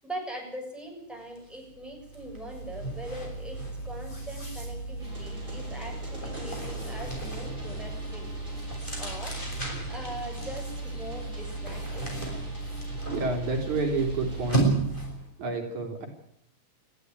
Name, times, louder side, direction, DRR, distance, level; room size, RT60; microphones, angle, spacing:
voice 1, 0.0-8.3 8.9-9.4 9.9-12.1, right 1 dB, ahead, 0 dB, 6.8 m, -41 dB
sound 1, 1.4-1.5 1.9-15.3, right 2 dB, 15° left, 6.7 m, -34 dB
sound 2, 5.0-14.6, left 1 dB, 15° right, 7.8 m, -46 dB
voice 2, 13.1-14.7 15.4-16.1, right 3 dB, 70° right, 3 dB, 4.6 m, -29 dB
21.0 x 14.5 x 9.6 m, 0.74 s
omnidirectional pair, 3.5 m